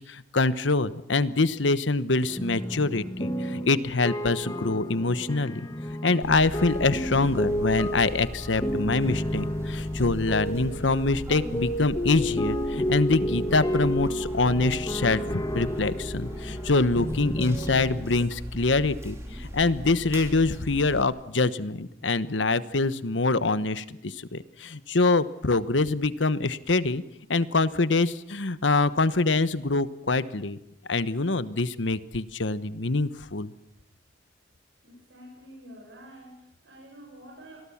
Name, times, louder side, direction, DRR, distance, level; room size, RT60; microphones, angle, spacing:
voice 1, 0.0-5.7 6.0-27.0 27.3-30.6 30.9-33.5, left 3 dB, 90° left, 14 dB, 1.1 m, -25 dB
sound 1, 2.3-18.2, equal, 20° left, 1.7 m, -31 dB
sound 2, 6.2-21.0, equal, 15° right, 3.3 m, -38 dB
voice 2, 34.8-37.6, equal, 85° right, -1 dB, 7.5 m, -48 dB
27.5 x 21.5 x 7.3 m, 0.81 s
head